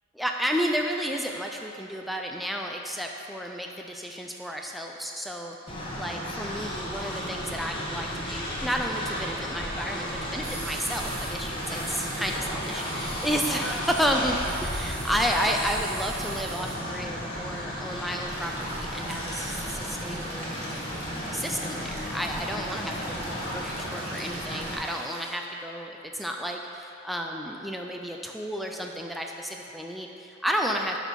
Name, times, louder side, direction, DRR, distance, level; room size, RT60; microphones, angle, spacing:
voice 1, 0.1-20.9 21.3-31.0, equal, ahead, 1 dB, 0.4 m, -32 dB
Train, 5.7-24.7, equal, 25° left, 1.1 m, -34 dB
sound 1, 10.4-16.9, right 4 dB, 50° right, 1.0 m, -42 dB
sound 2, 18.3-25.3, right 1 dB, 30° right, 1.6 m, -41 dB
12.0 x 4.1 x 4.7 m, 2.8 s
head